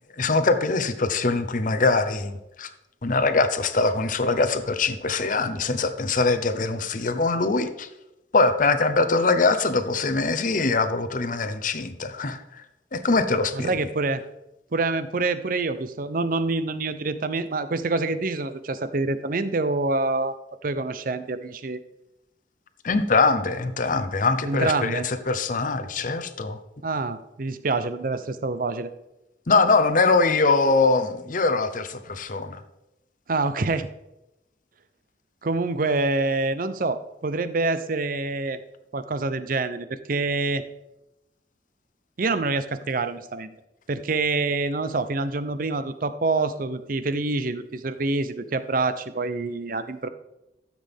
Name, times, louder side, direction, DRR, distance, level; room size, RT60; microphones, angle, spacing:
voice 1, 0.1-2.7 3.0-7.9 8.3-12.6 12.9-13.8 22.8-26.6 29.5-32.6, left 3 dB, 50° left, 9 dB, 0.8 m, -23 dB
voice 2, 13.5-14.2 14.7-20.4 20.6-21.8 24.4-25.1 26.8-28.9 33.3-33.9 35.4-38.6 38.9-40.6 42.2-43.5 43.9-50.1, right 3 dB, 50° right, 12 dB, 0.7 m, -26 dB
13.5 x 7.6 x 3.5 m, 0.91 s
head